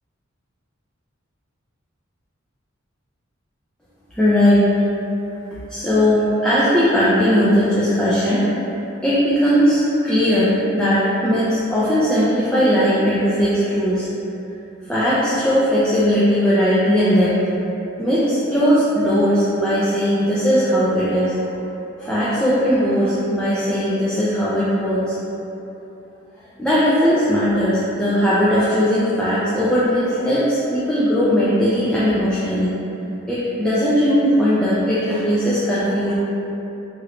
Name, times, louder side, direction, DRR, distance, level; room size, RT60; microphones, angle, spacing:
voice 1, 4.1-4.7 5.7-8.5 9.0-14.1 14.8-17.4 18.0-21.4 22.0-25.2 26.6-32.8 33.3-36.1, equal, 5° left, -10 dB, 0.3 m, -18 dB
3.0 x 3.0 x 2.4 m, 3.0 s
head